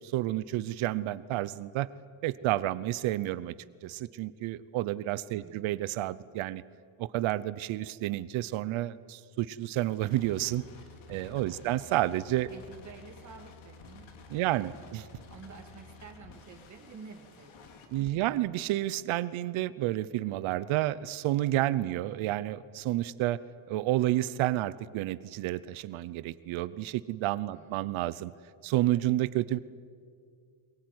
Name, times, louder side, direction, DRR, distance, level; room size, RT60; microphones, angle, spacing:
voice 1, 0.0-1.9 2.2-3.5 3.8-6.6 7.0-10.6 11.1-12.5 14.3-15.1 17.9-23.4 23.7-28.3 28.6-29.6, right 15 dB, 75° right, 16 dB, 0.9 m, -30 dB
voice 2, 5.3-5.9 11.3-11.9 12.5-15.0 15.3-18.2 21.7-22.0 27.5-28.1, right 5 dB, 35° right, 2 dB, 2.7 m, -51 dB
sound 1, 9.8-18.1, left 4 dB, 75° left, 3.0 m, -52 dB
22.5 x 22.0 x 9.6 m, 2.2 s
cardioid pair, 165°, 48 cm